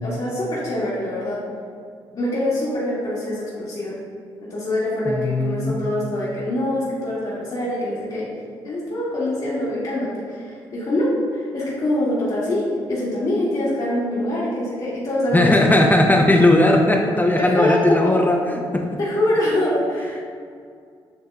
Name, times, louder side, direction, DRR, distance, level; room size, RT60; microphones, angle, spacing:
voice 1, 0.0-1.4 2.1-4.0 4.5-8.3 8.6-15.5 17.4-18.1 19.0-20.2, left 1 dB, 50° left, -9 dB, 1.3 m, -24 dB
voice 2, 5.1-5.8 15.3-18.9, left 1 dB, 15° left, 1 dB, 0.5 m, -17 dB
7.9 x 2.7 x 2.4 m, 2.3 s
supercardioid pair, 55°, 11 cm